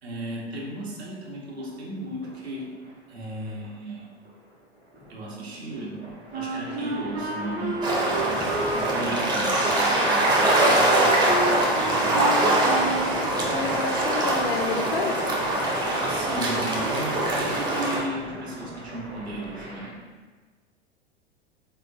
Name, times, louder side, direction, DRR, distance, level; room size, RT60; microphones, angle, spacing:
voice 1, 0.0-2.8 3.1-4.1 5.1-6.0 6.3-7.8 8.1-12.6 16.1-20.0, right 2 dB, 70° right, -3 dB, 1.0 m, -35 dB
sound 1, 1.6-19.9, equal, 90° right, 1.4 m, -42 dB
Wind instrument woodwind instrument, 6.3-13.1, right 2 dB, 40° right, 0.9 m, -31 dB
sound 2, 7.8-18.0, right 1 dB, 15° right, 0.5 m, -23 dB
voice 2, 13.5-15.1, left 4 dB, 65° left, 4 dB, 0.5 m, -29 dB
3.7 x 3.4 x 2.5 m, 1.4 s
figure-of-eight pair, 90°, 33 cm